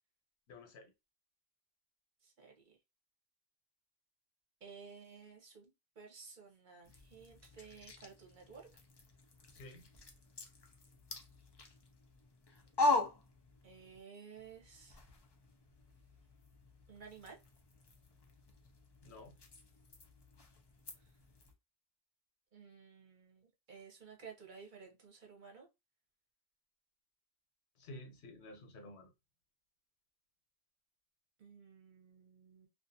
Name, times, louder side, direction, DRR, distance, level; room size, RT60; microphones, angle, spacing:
voice 1, 0.5-0.9 9.5-9.9 19.0-19.3 27.8-29.1, left 2 dB, 85° left, 1.0 m, -52 dB
voice 2, 2.2-2.8 4.6-5.7 6.0-8.7 12.6-12.7 13.6-15.1 16.9-17.4 22.5-25.7 31.4-32.7, right 5 dB, 50° right, 0.8 m, -55 dB
sound 1, 6.8-14.0 14.3-21.5, left 2 dB, 35° left, 0.4 m, -42 dB
2.4 x 2.4 x 2.6 m
omnidirectional pair, 1.1 m